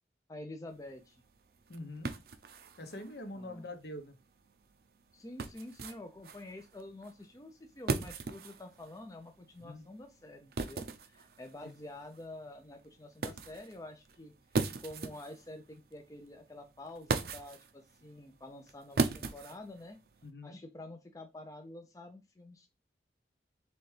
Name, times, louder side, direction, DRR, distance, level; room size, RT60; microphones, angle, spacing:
voice 1, 0.3-1.2 3.4-3.7 5.1-14.3 14.8-20.0 20.4-22.7, left 1 dB, 20° left, 5 dB, 0.5 m, -48 dB
sound 1, 0.7-20.3, right 3 dB, 55° right, 0.5 m, -40 dB
voice 2, 1.7-2.1 2.8-4.2 9.6-9.8 11.6-11.7 20.2-20.6, left 1 dB, 65° left, 7 dB, 0.9 m, -44 dB
4.1 x 3.4 x 3.2 m, 0.25 s
head